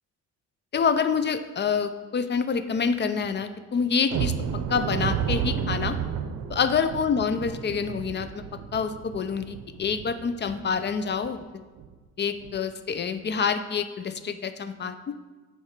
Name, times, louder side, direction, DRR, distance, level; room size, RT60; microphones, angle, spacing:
voice 1, 0.7-4.4 4.7-6.0 6.5-8.4 8.7-11.6 12.2-15.1, left 6 dB, 35° left, 10 dB, 0.6 m, -27 dB
sound 1, 4.1-10.8 11.2-11.3 11.8-11.9 12.4-12.6, right 8 dB, 75° right, 0.7 m, -32 dB
7.3 x 4.5 x 5.1 m, 1.3 s
cardioid pair, 90°, 30 cm